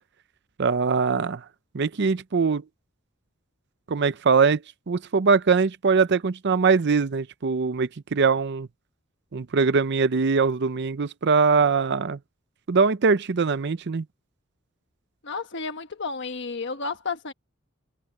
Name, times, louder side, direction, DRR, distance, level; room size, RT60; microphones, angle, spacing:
voice 1, 0.6-1.5 1.7-2.6 3.9-8.7 9.3-12.2 12.7-14.0, right 5 dB, 55° right, 0.6 m, -22 dB
voice 2, 15.2-17.3, left 4 dB, 60° left, 1.3 m, -32 dB
head